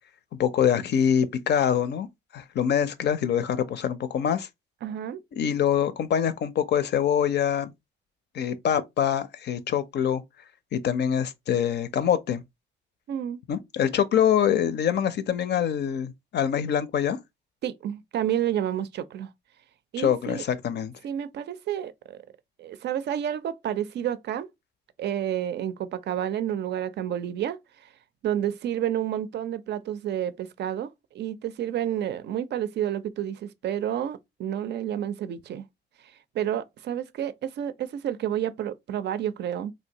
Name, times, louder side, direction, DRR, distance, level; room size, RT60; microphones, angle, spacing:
voice 1, 0.4-2.1 2.3-4.5 5.3-7.7 8.3-10.2 10.7-12.4 13.5-17.2 20.0-20.9, left 9 dB, 60° left, 0.5 m, -24 dB
voice 2, 4.8-5.2 13.1-13.4 17.6-19.3 19.9-20.4 21.0-22.2 22.6-24.5 25.0-27.6 28.2-35.6 36.3-39.7, right 10 dB, 60° right, 0.4 m, -30 dB
3.2 x 2.6 x 2.8 m
cardioid pair, 90°, 20 cm